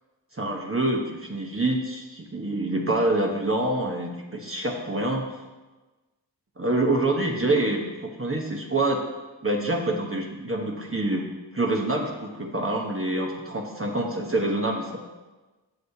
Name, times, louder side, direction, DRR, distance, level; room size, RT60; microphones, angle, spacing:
voice 1, 0.3-5.3 6.6-9.0 9.4-11.3 11.5-15.0, right 2 dB, 30° right, 0 dB, 1.0 m, -26 dB
15.0 x 6.3 x 2.8 m, 1.2 s
wide cardioid pair, 70°, 44 cm